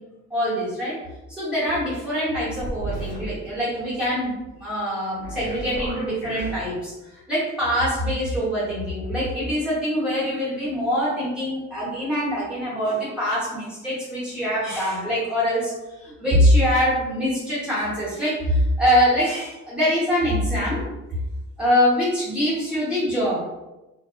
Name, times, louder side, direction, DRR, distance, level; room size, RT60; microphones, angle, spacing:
voice 1, 0.3-1.0 1.3-4.3 4.6-6.9 7.3-15.7 16.0-20.8 21.6-23.4, equal, 5° right, -10 dB, 1.1 m, -23 dB
sound 1, 2.6-3.2 5.2-6.6, right 2 dB, 90° left, 1.1 m, -33 dB
2.6 x 2.5 x 2.4 m, 1.1 s
cardioid pair, 90°, 30 cm